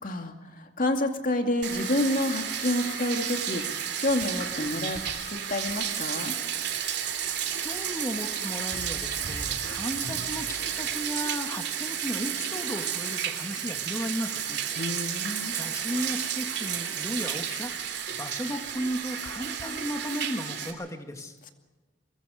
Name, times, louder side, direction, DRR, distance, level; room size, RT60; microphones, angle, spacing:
voice 1, 0.0-3.6 4.0-6.3 14.8-15.6, left 1 dB, 50° left, 5 dB, 2.4 m, -29 dB
Bathtub (filling or washing), 1.6-20.7, right 8 dB, 65° right, 3.1 m, -32 dB
voice 2, 7.6-14.6 15.5-17.7 18.1-21.4, equal, 20° left, 5 dB, 2.0 m, -35 dB
24.0 x 22.5 x 5.1 m, 1.3 s
head